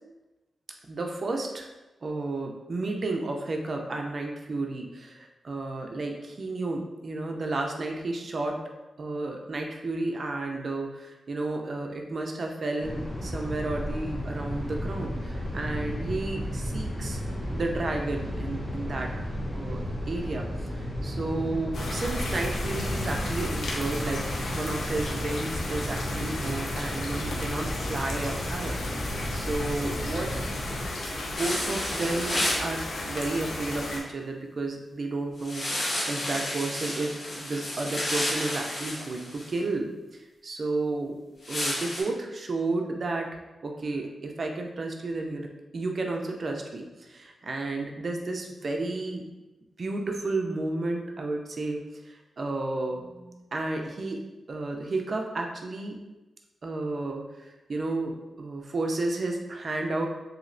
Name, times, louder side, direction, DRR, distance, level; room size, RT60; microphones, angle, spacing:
voice 1, 0.9-1.7 2.0-8.6 9.0-17.2 17.5-19.8 20.1-24.2 24.5-28.8 29.0-30.4 31.1-41.2 41.5-43.3 43.6-49.2 49.8-54.2 54.5-56.0 56.6-60.1, right 2 dB, 45° right, 2 dB, 0.4 m, -32 dB
sound 1, 12.8-30.9, equal, 25° left, 0.7 m, -33 dB
sound 2, 21.7-34.0, left 1 dB, 80° left, 0.5 m, -34 dB
sound 3, 31.4-32.7 35.4-39.5 41.4-42.0, left 1 dB, 55° left, 0.9 m, -31 dB
3.0 x 2.7 x 2.5 m, 1.1 s
wide cardioid pair, 120°, 0 cm